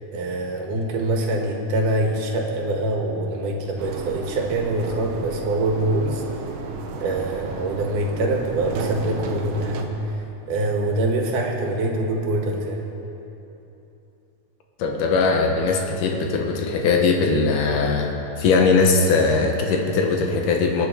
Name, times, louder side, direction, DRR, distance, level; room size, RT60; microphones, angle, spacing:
voice 1, 0.1-6.2 7.0-10.2 10.5-12.9 15.7-15.8, right 1 dB, 85° right, 1 dB, 3.0 m, -24 dB
sound 1, 3.8-9.8, right 4 dB, 65° right, 1.6 m, -33 dB
voice 2, 14.8-18.1 18.4-20.9, left 4 dB, 85° left, 2 dB, 2.7 m, -20 dB
22.5 x 9.6 x 4.8 m, 3.0 s
omnidirectional pair, 3.6 m